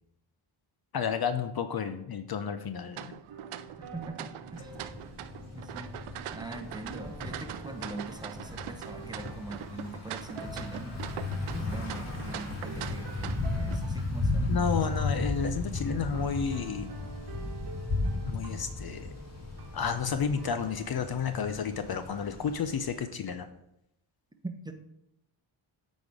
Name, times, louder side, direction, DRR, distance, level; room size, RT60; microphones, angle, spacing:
voice 1, 0.9-3.2 14.5-17.0 18.2-19.1 19.7-23.5, left 6 dB, 50° left, 9 dB, 0.6 m, -31 dB
sound 1, 2.9-13.8, right 12 dB, 80° right, 0.6 m, -42 dB
sound 2, 3.3-21.9, right 3 dB, 50° right, 1.2 m, -48 dB
voice 2, 3.8-4.7 5.4-5.9 6.3-14.8 24.4-24.7, right 2 dB, 10° right, 5 dB, 1.0 m, -43 dB
Thunder / Bicycle, 4.5-23.0, left 2 dB, 30° left, 2.1 m, -35 dB
8.4 x 4.3 x 4.9 m, 0.82 s
cardioid pair, 70°, 49 cm